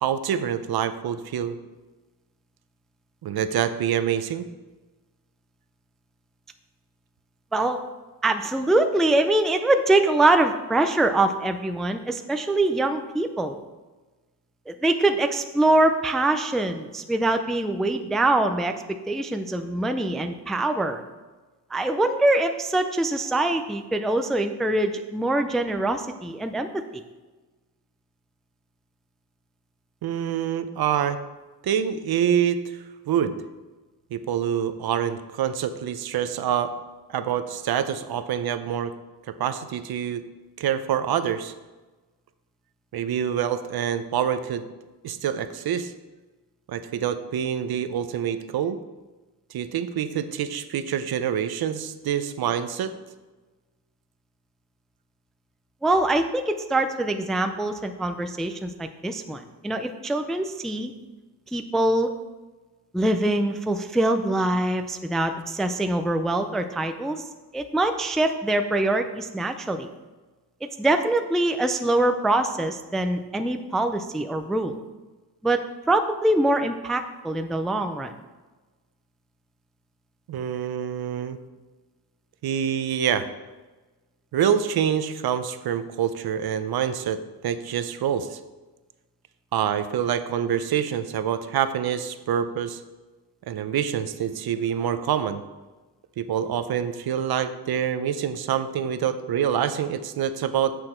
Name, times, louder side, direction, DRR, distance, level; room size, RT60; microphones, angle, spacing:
voice 1, 0.0-1.6 3.2-4.5 30.0-31.2 31.6-32.8 33.1-33.4 34.1-36.7 37.1-38.9 39.3-40.2 40.6-41.5 42.9-44.7 45.0-45.9 46.7-48.8 49.5-52.9 80.3-81.4 82.4-83.3 84.3-88.4 89.5-92.8 93.5-95.4 96.2-100.8, right 9 dB, 65° right, 11 dB, 0.6 m, -26 dB
voice 2, 8.2-13.6 14.7-21.0 21.7-27.0 55.8-60.9 61.5-62.1 62.9-67.2 67.5-69.9 70.8-74.8 75.4-75.6 75.9-78.1, right 2 dB, ahead, 7 dB, 0.3 m, -24 dB
8.6 x 6.2 x 4.4 m, 1.2 s
wide cardioid pair, 140°, 40 cm